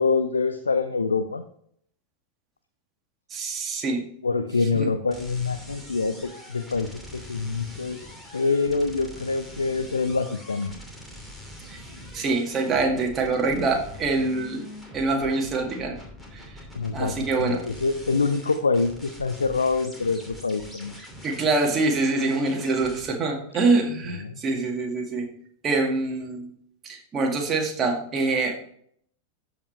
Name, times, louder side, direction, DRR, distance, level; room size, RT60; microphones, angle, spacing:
voice 1, 0.0-1.4 4.2-10.8 16.7-21.0 24.2-24.4, left 4 dB, 75° left, 9 dB, 0.5 m, -25 dB
voice 2, 3.3-4.1 4.7-4.9 11.7-11.8 12.1-14.7 14.9-16.0 16.3-16.5 16.9-17.6 21.2-25.3 25.6-26.5 26.8-28.6, right 3 dB, 25° right, 1 dB, 2.1 m, -25 dB
sound 1, 5.1-23.1, equal, 5° left, 2.8 m, -44 dB
13.5 x 5.1 x 3.4 m, 0.64 s
figure-of-eight pair, 90°, 0 cm